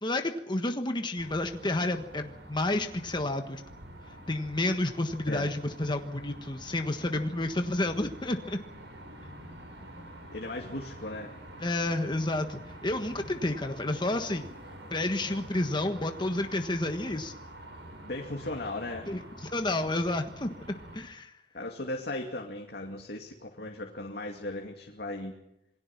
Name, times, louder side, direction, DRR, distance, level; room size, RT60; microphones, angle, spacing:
voice 1, 0.0-3.6 4.3-8.6 11.6-14.5 14.9-17.3 19.1-20.5 20.9-21.3, left 2 dB, 25° left, 6 dB, 1.4 m, -30 dB
sound 1, 1.2-21.0, right 1 dB, 85° right, 6.4 m, -47 dB
voice 2, 10.3-11.3 17.0-17.1 17.9-19.1 21.5-25.3, left 2 dB, 65° left, 1 dB, 2.5 m, -37 dB
27.5 x 20.5 x 6.0 m, 0.83 s
head